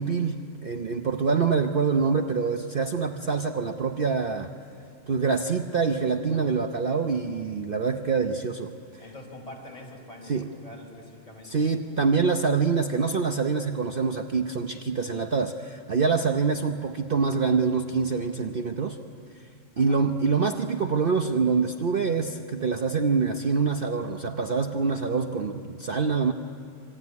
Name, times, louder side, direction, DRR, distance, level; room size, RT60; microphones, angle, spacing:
voice 1, 0.0-4.5 5.1-9.0 10.3-10.5 11.4-19.0 19.8-26.3, right 5 dB, 45° right, 6 dB, 1.0 m, -25 dB
voice 2, 6.3-6.6 9.0-11.9 12.6-12.8 19.8-20.0, left 1 dB, 25° left, 0 dB, 4.7 m, -45 dB
26.5 x 23.0 x 9.5 m, 2.4 s
omnidirectional pair, 1.4 m